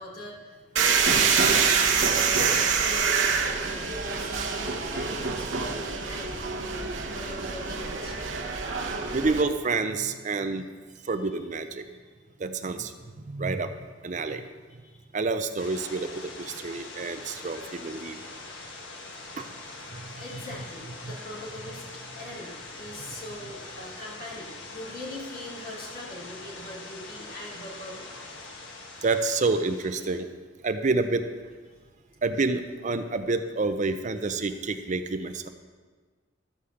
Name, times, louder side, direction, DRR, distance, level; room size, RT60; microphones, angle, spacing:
voice 1, 0.0-1.5 1.9-8.2 11.0-11.1 11.8-12.0 14.8-15.0 15.9-16.1 20.2-21.8 22.1-28.1, left 1 dB, 50° left, -5 dB, 2.8 m, -41 dB
sound 1, 0.8-9.4, right 5 dB, 80° right, 1.0 m, -26 dB
voice 2, 9.1-10.7 11.0-11.9 12.4-12.9 13.3-13.8 14.0-14.4 15.1-18.2 19.4-19.5 19.9-20.1 21.0-21.2 29.0-30.3 30.6-31.3 32.2-35.5, right 3 dB, 40° right, 9 dB, 0.5 m, -28 dB
sound 2, 15.6-30.2, left 3 dB, 70° left, 1.5 m, -43 dB
13.0 x 5.0 x 7.0 m, 1.5 s
head